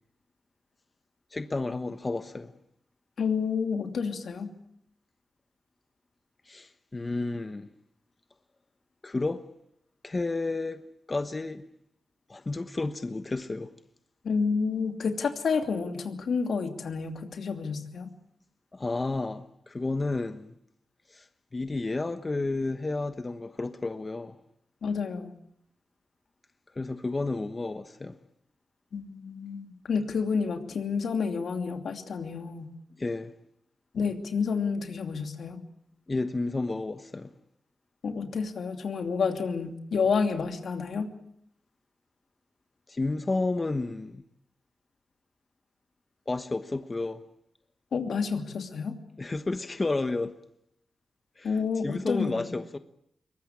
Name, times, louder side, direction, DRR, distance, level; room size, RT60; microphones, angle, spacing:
voice 1, 1.3-2.5 6.5-7.7 9.0-9.5 10.0-10.8 11.1-11.6 12.3-13.7 18.7-20.5 21.1-21.3 21.5-24.4 26.8-28.2 33.0-33.3 36.1-37.3 42.9-44.2 46.3-47.2 49.2-50.3 51.4-51.5 51.8-52.8, left 3 dB, 30° left, 1.2 m, -31 dB
voice 2, 3.2-4.5 14.2-18.1 24.8-25.3 28.9-32.7 33.9-35.6 38.0-41.1 47.9-49.0 51.4-52.5, left 5 dB, 75° left, 2.8 m, -29 dB
23.0 x 20.0 x 8.5 m
cardioid pair, 75°, 0 cm